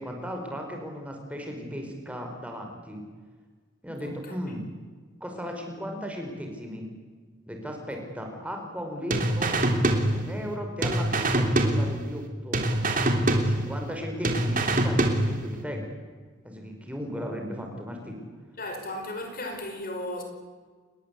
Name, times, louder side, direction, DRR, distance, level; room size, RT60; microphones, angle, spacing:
voice 1, 0.0-3.0 3.8-4.6 5.2-6.9 7.5-9.6 10.1-12.6 13.5-15.8 16.4-18.2, equal, 5° right, 2 dB, 4.9 m, -36 dB
voice 2, 4.0-4.3 7.9-8.0 18.6-20.2, left 1 dB, 45° left, 4 dB, 5.2 m, -35 dB
sound 1, 9.1-10.5 10.8-12.3 12.5-14.0 14.2-15.6, right 1 dB, 40° right, 3.4 m, -25 dB
28.5 x 22.0 x 8.4 m, 1.5 s
head